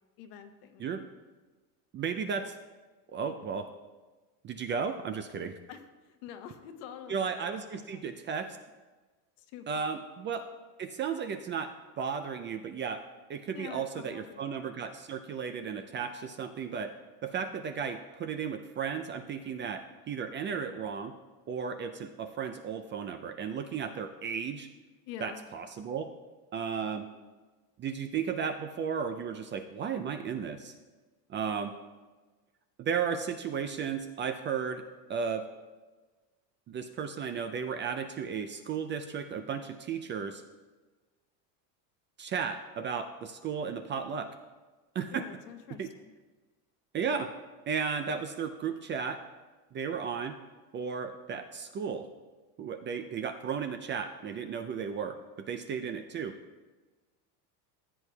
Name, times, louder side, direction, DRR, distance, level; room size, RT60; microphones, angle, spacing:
voice 1, 0.2-0.9 5.7-8.1 8.3-8.6 9.4-10.0 13.5-14.7 25.1-25.4 45.1-46.1, left 8 dB, 70° left, 7 dB, 1.1 m, -47 dB
voice 2, 1.9-2.6 3.1-3.7 4.4-5.5 7.1-8.6 9.7-10.4 10.8-11.7 12.0-13.0 13.3-16.9 17.2-21.2 21.5-24.7 25.2-26.1 26.5-27.1 27.8-30.7 31.3-31.7 32.8-34.8 35.1-35.5 36.7-40.4 42.2-44.3 44.9-45.2 45.8-45.9 46.9-47.3 47.7-49.2 49.7-50.3 50.7-52.1 52.6-55.2 55.5-56.4, right 6 dB, 25° right, 7 dB, 0.3 m, -34 dB
15.5 x 8.1 x 2.2 m, 1.3 s
supercardioid pair, 110°, 48 cm